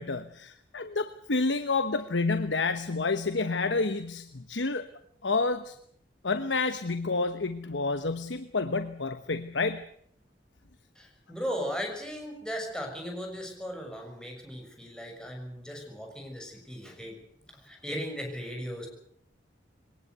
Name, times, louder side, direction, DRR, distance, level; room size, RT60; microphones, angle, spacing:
voice 1, 0.0-4.9 5.2-5.7 6.2-9.8, left 3 dB, 90° left, 10 dB, 1.1 m, -29 dB
voice 2, 10.9-17.2 17.5-18.9, equal, 5° left, 2 dB, 6.7 m, -37 dB
22.5 x 19.0 x 8.2 m, 0.66 s
head